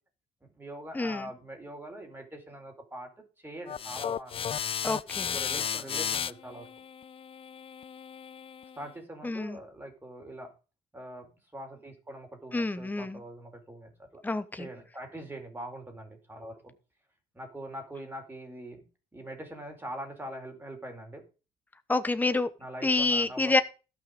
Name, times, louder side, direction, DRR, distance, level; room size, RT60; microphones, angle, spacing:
voice 1, 0.4-3.1 3.4-4.7 5.2-6.7 8.8-10.5 10.9-14.2 14.5-16.7 17.3-18.8 19.1-21.2 22.6-23.6, right 1 dB, 10° right, 3 dB, 4.8 m, -43 dB
voice 2, 0.9-1.3 4.8-5.3 9.2-9.6 12.5-13.2 14.2-14.7 21.9-22.5 22.8-23.6, left 3 dB, 10° left, 12 dB, 1.0 m, -28 dB
sound 1, 3.7-8.8, left 8 dB, 35° left, 0.5 m, -34 dB
16.0 x 6.1 x 5.3 m, 0.31 s
cardioid pair, 110°, 17 cm